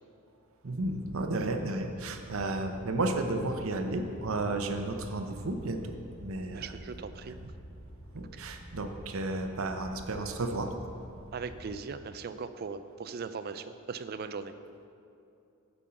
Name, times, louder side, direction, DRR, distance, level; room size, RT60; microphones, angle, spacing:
voice 1, 0.6-5.8 6.2-6.7 8.1-10.7, right 2 dB, 70° right, 6 dB, 0.7 m, -32 dB
sound 1, 1.1-11.7, equal, 25° left, 1.5 m, -48 dB
voice 2, 6.5-7.3 8.3-8.4 11.3-14.5, right 5 dB, 45° right, 11 dB, 0.3 m, -39 dB
8.5 x 5.4 x 5.7 m, 2.6 s
head